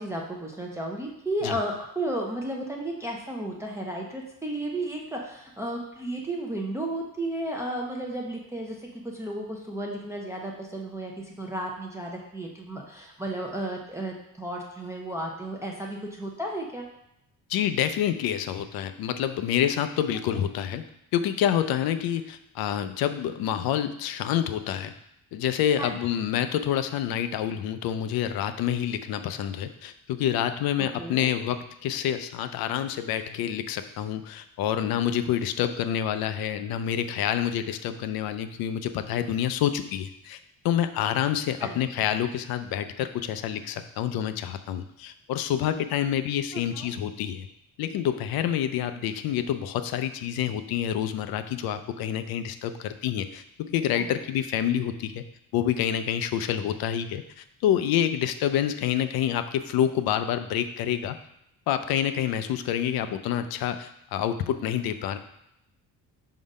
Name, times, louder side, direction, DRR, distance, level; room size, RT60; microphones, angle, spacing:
voice 1, 0.0-16.9 20.3-20.4 25.8-26.0 30.8-31.3 41.6-41.8 46.5-46.9 53.9-54.2, right 1 dB, 10° right, -2 dB, 0.5 m, -33 dB
voice 2, 17.5-20.8 21.1-24.9 25.3-40.4 40.6-47.5 47.8-55.2 55.5-61.2 61.7-65.2, left 10 dB, 90° left, 10 dB, 0.6 m, -27 dB
4.8 x 3.8 x 5.3 m, 0.79 s
cardioid pair, 170°, 35 cm